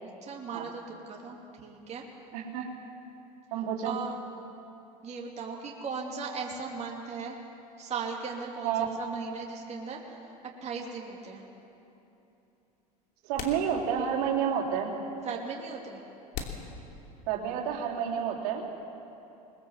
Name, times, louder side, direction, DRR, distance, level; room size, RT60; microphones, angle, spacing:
voice 1, 0.2-2.0 3.8-4.2 5.0-7.4 7.8-10.3 10.6-11.5 15.2-16.0, right 5 dB, 35° right, -1 dB, 2.8 m, -38 dB
voice 2, 2.3-2.7 3.5-4.0 8.6-8.9 13.2-14.9 17.3-18.6, right 8 dB, 70° right, -3 dB, 3.5 m, -29 dB
sound 1, 11.5-11.6 12.7-12.8 13.3-14.3 14.6-14.7 15.4-15.5 16.3-17.6, left 6 dB, 60° left, 2.9 m, -41 dB
21.0 x 21.0 x 7.5 m, 2.9 s
hypercardioid pair, 90°, 20 cm